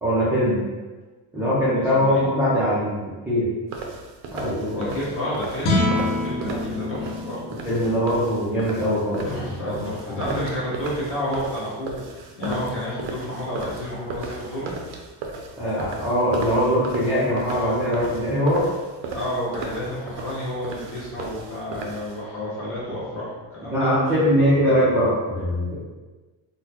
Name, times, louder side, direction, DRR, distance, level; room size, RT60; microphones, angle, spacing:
voice 1, 0.0-0.6 1.3-3.5 4.3-4.9 7.6-9.4 9.7-10.2 12.4-12.6 15.6-18.7 23.7-25.7, equal, 5° right, -12 dB, 0.5 m, -22 dB
voice 2, 1.9-2.3 4.8-7.4 9.3-14.8 19.1-23.9, left 1 dB, 25° left, -9 dB, 1.2 m, -30 dB
sound 1, 3.7-22.2, right 3 dB, 70° right, 0.6 m, -36 dB
sound 2, 5.6-11.9, left 2 dB, 70° left, 0.9 m, -29 dB
3.9 x 2.2 x 2.9 m, 1.3 s
cardioid pair, 165°, 49 cm